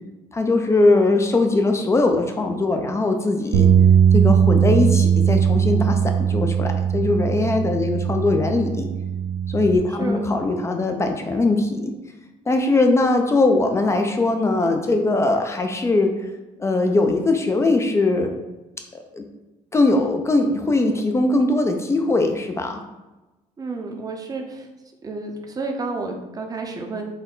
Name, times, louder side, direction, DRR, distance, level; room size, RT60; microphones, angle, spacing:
voice 1, 0.3-3.7 4.1-8.9 9.5-11.9 12.5-16.1 16.6-18.3 18.9-19.3 19.7-22.8, left 2 dB, 20° left, 4 dB, 0.4 m, -20 dB
sound 1, 3.5-9.8, right 8 dB, 80° right, 0.5 m, -19 dB
voice 2, 23.6-24.7 25.0-27.1, right 3 dB, 25° right, 3 dB, 0.6 m, -30 dB
4.2 x 2.1 x 3.7 m, 1.1 s
cardioid pair, 115°, 14 cm